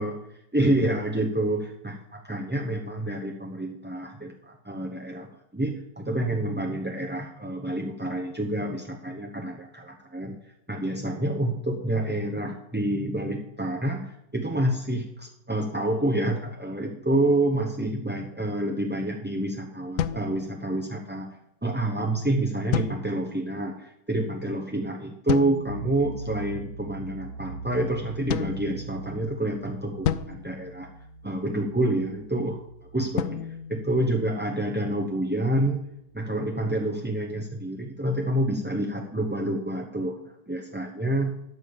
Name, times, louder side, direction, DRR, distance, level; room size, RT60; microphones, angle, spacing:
voice 1, 0.5-10.4 10.7-21.3 21.6-30.9 31.2-35.8 36.1-41.3, right 1 dB, 10° right, -1 dB, 0.6 m, -28 dB
sound 1, 20.0-21.1 22.7-23.5 25.3-25.9 28.3-29.4 30.0-31.5 33.2-34.7, left 9 dB, 70° left, 0.9 m, -33 dB
sound 2, 25.6-36.8, right 3 dB, 90° left, 5.9 m, -42 dB
12.5 x 5.3 x 7.1 m, 0.83 s
omnidirectional pair, 1.6 m